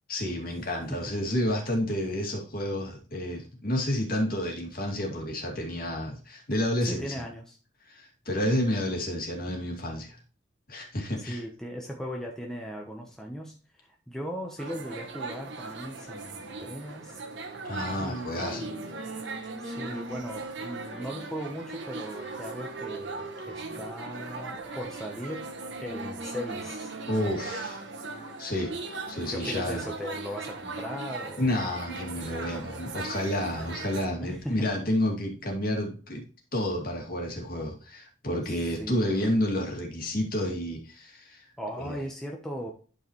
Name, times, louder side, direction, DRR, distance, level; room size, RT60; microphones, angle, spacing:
voice 1, 0.1-7.1 7.9-10.2 10.7-11.4 17.6-18.7 27.1-27.8 28.4-28.7 29.1-29.9 31.4-36.2 36.5-41.5 41.8-42.0, left 1 dB, 50° left, 1 dB, 2.3 m, -30 dB
voice 2, 6.8-7.6 11.2-17.2 18.0-18.9 19.6-25.5 25.8-26.9 29.3-31.5 32.5-32.7 34.2-34.7 38.5-39.4 41.6-42.7, equal, 5° left, 0 dB, 0.9 m, -38 dB
sound 1, 14.6-34.1, right 3 dB, 65° right, 1.3 m, -39 dB
Wind instrument woodwind instrument, 18.3-27.8, right 2 dB, 85° right, 2.2 m, -42 dB
11.5 x 4.7 x 3.1 m, 0.38 s
head